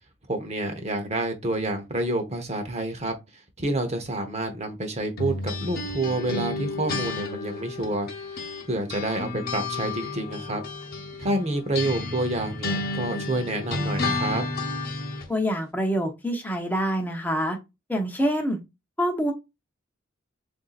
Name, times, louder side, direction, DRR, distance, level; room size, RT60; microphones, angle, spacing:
voice 1, 0.3-3.1 3.6-10.6 11.2-14.4, right 2 dB, 30° right, 0.9 m, -28 dB
sound 1, 5.2-8.6 8.9-15.3, left 2 dB, 45° left, 1.0 m, -31 dB
voice 2, 15.3-17.6 17.9-18.6 19.0-19.3, equal, 10° left, 0.8 m, -26 dB
7.0 x 2.7 x 2.4 m
head